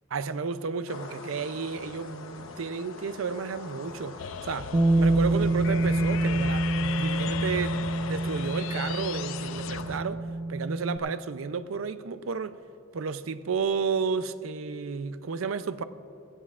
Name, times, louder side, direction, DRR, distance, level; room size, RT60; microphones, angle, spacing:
voice 1, 0.1-4.7 5.0-12.6 12.9-15.8, right 5 dB, 85° right, 0.5 m, -32 dB
sound 1, 0.9-10.0, left 3 dB, 90° left, 1.0 m, -41 dB
sound 2, 4.2-9.8, left 9 dB, 70° left, 0.3 m, -37 dB
Bass guitar, 4.7-11.0, right 2 dB, 30° right, 0.7 m, -27 dB
18.0 x 16.5 x 2.4 m
head